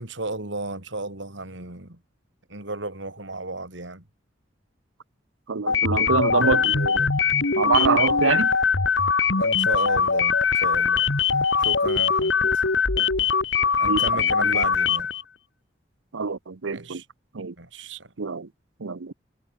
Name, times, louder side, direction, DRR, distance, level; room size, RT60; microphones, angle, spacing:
voice 1, 0.0-2.0 2.5-4.0 9.4-11.1 11.6-12.6 13.8-15.1 16.7-17.1 17.6-18.1, right 2 dB, 70° right, 3.8 m, -34 dB
voice 2, 5.5-7.1 7.6-8.5 12.9-13.1 13.8-14.0 14.4-14.6 16.1-17.0 17.3-17.5 17.9-18.5 18.8-19.1, right 4 dB, 85° right, 0.8 m, -25 dB
sound 1, 5.7-15.2, left 5 dB, 70° left, 1.6 m, -22 dB
head